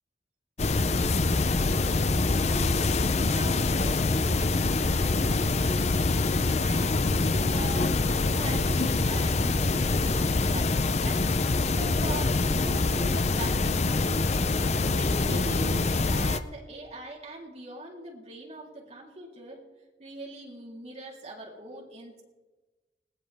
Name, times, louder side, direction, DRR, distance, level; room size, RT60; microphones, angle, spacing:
sound 1, 0.6-16.4, left 3 dB, 35° left, 0.6 m, -25 dB
voice 1, 1.8-3.0 3.3-19.6 20.0-22.2, right 1 dB, 35° right, -2 dB, 3.6 m, -42 dB
20.5 x 18.0 x 3.5 m, 1.2 s
head